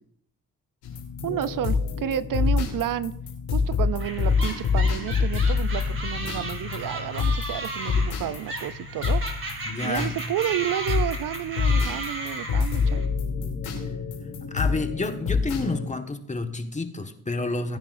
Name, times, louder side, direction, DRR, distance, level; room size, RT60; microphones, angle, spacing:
sound 1, 0.8-15.9, left 5 dB, 90° left, 2.9 m, -27 dB
voice 1, 1.2-3.1 3.5-9.2 9.8-13.0, right 11 dB, 65° right, 16 dB, 0.5 m, -30 dB
sound 2, 4.0-13.1, right 2 dB, 35° right, 2.8 m, -35 dB
voice 2, 9.7-10.1 14.5-17.8, left 3 dB, 20° left, 5 dB, 1.5 m, -29 dB
19.0 x 10.0 x 2.6 m, 0.67 s
supercardioid pair, 55°, 36 cm